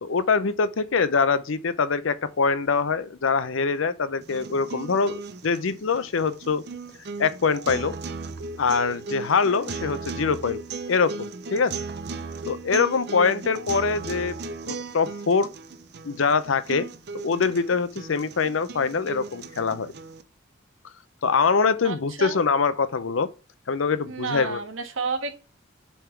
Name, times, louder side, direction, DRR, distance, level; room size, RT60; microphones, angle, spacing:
voice 1, 0.0-6.6 7.2-7.9 8.6-10.6 10.9-11.8 12.5-14.4 14.6-15.5 16.0-16.9 17.1-19.9 21.2-23.3 23.7-24.6, left 5 dB, 85° left, 0.6 m, -24 dB
sound 1, 4.2-20.2, right 3 dB, 55° right, 0.6 m, -36 dB
voice 2, 21.8-22.4 24.0-25.3, right 4 dB, 90° right, 1.4 m, -30 dB
7.1 x 3.6 x 4.5 m
head